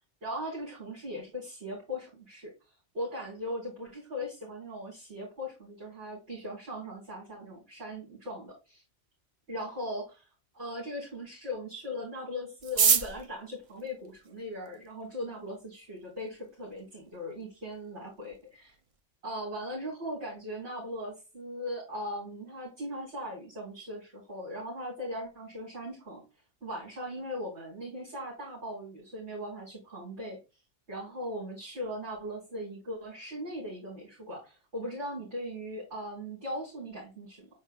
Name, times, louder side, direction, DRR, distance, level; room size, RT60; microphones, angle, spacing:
voice 1, 0.2-2.5 2.9-8.8 9.5-10.3 10.5-18.7 19.2-26.2 26.6-30.4 30.9-37.5, equal, 75° right, -9 dB, 4.8 m, -39 dB
sound 1, 12.6-14.9 15.7-15.8 16.0-16.1 16.3-16.8 17.1-17.2 17.4-17.8 18.2-18.4 18.7-19.0, right 6 dB, 45° right, 0.4 m, -28 dB
8.8 x 5.4 x 2.2 m, 0.28 s
omnidirectional pair, 1.2 m